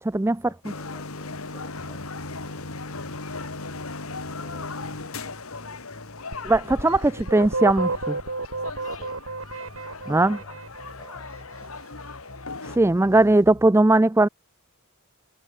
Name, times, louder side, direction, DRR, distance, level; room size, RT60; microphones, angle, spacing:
voice 1, 0.4-3.1 3.4-6.9 8.8-10.6 11.0-12.1, left 1 dB, 20° left, 7.1 m, -54 dB
sound 1, 0.6-12.8, left 3 dB, 75° left, 2.3 m, -37 dB
sound 2, 1.8-13.7, equal, 40° left, 4.1 m, -47 dB
sound 3, 6.3-11.2, right 3 dB, 65° right, 2.6 m, -31 dB
voice 2, 6.4-8.2 10.1-10.4 12.6-14.3, right 2 dB, 10° right, 0.4 m, -19 dB
head